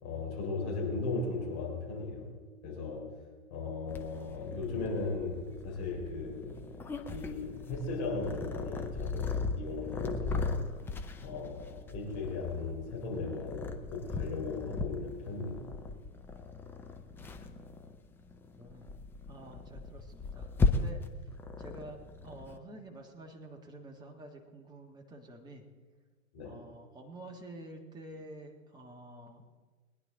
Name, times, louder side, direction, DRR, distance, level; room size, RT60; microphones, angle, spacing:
voice 1, 0.0-2.3 2.6-3.1 3.5-6.6 7.1-10.6 11.2-15.6 26.3-26.6, left 3 dB, 35° left, -1 dB, 3.8 m, -37 dB
Purr, 3.9-22.6, left 3 dB, 5° left, 0.5 m, -37 dB
voice 2, 18.5-18.9 19.3-21.0 21.6-22.0 22.2-25.6 26.4-29.4, right 1 dB, 10° right, 1 dB, 1.5 m, -49 dB
21.5 x 10.5 x 3.8 m, 1.4 s
figure-of-eight pair, 110°, 43 cm